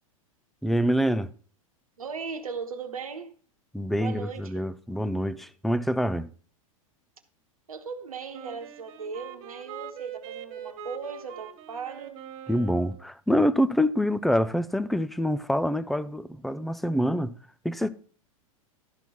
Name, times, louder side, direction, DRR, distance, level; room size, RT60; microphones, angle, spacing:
voice 1, 0.6-1.3 3.7-6.3 12.5-17.3 17.6-17.9, equal, ahead, 0.5 m, -26 dB
voice 2, 2.0-3.3 3.9-4.6 7.7-12.2, right 5 dB, 80° right, 1.1 m, -38 dB
Wind instrument woodwind instrument, 8.3-13.1, right 8 dB, 45° right, 1.7 m, -43 dB
12.0 x 4.5 x 5.6 m
hypercardioid pair, 95°, 18 cm